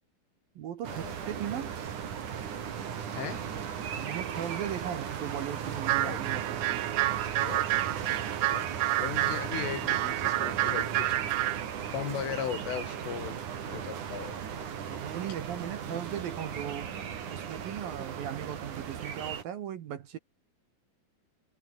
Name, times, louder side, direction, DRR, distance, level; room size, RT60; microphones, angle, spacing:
voice 1, 0.6-1.7 3.9-6.8 14.9-20.2, right 10 dB, 60° right, 2.7 m, -38 dB
sound 1, 0.8-19.4, right 8 dB, 45° right, 3.4 m, -37 dB
Bark, 5.8-6.4 6.9-7.9 9.3-9.5 10.6-10.8 12.2-12.3 12.6-12.8 13.6-13.8 14.2-15.0, left 13 dB, 70° left, 2.2 m, -45 dB
sound 2, 5.8-11.6, right 17 dB, 90° right, 3.6 m, -29 dB
voice 2, 9.0-11.2 11.9-13.4 13.7-14.4, left 9 dB, 90° left, 5.9 m, -37 dB
omnidirectional pair, 5.5 m